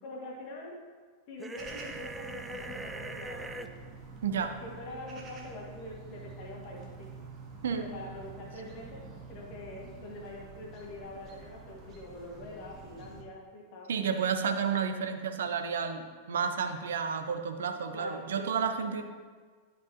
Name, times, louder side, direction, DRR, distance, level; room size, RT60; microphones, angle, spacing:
voice 1, 0.0-0.8 1.3-3.7 4.6-7.1 7.7-13.9 17.9-18.5, left 2 dB, 45° left, -1 dB, 1.7 m, -44 dB
sound 1, 1.4-3.7, right 2 dB, 10° right, 0.4 m, -41 dB
sound 2, 1.6-13.2, right 4 dB, 30° right, 1.1 m, -48 dB
voice 2, 4.2-4.5 7.6-7.9 13.9-19.0, right 6 dB, 65° right, 7 dB, 0.7 m, -31 dB
11.5 x 5.2 x 2.8 m, 1.5 s
figure-of-eight pair, 90°, 0 cm